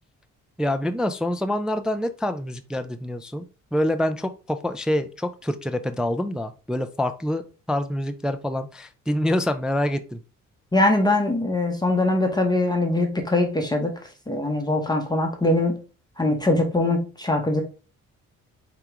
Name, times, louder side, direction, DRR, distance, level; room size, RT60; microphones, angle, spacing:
voice 1, 0.6-3.4 3.7-7.4 7.7-10.2, left 1 dB, 5° right, 8 dB, 0.3 m, -26 dB
voice 2, 10.7-13.9 14.3-15.8 16.2-17.6, left 2 dB, 15° left, 2 dB, 0.9 m, -22 dB
4.7 x 3.0 x 3.5 m, 0.35 s
cardioid pair, 90°, 30 cm